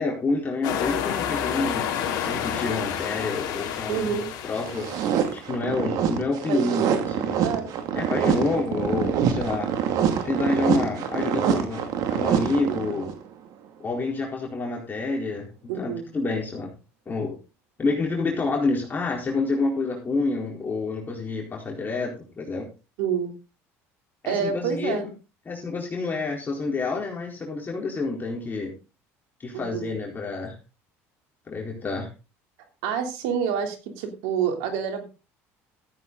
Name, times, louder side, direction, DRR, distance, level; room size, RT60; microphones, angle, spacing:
voice 1, 0.0-4.2 4.4-4.9 5.3-7.4 7.9-9.7 10.2-13.1 13.8-15.5 15.7-16.7 17.1-17.3 17.8-22.7 24.2-25.1 25.5-28.7 29.4-30.5 31.5-32.1, left 3 dB, 30° left, -1 dB, 4.3 m, -28 dB
sound 1, 0.6-5.4, left 9 dB, 65° left, 3.1 m, -29 dB
voice 2, 3.9-4.3 6.5-7.0 7.4-7.7 8.2-8.5 12.6-13.0 15.7-16.0 23.0-23.3 24.2-25.1 29.5-29.9 32.8-35.0, right 7 dB, 80° right, 5 dB, 3.2 m, -28 dB
sound 2, 4.6-13.2, right 8 dB, 65° right, 2.3 m, -26 dB
14.0 x 9.2 x 3.9 m, 0.31 s
supercardioid pair, 90°, 7 cm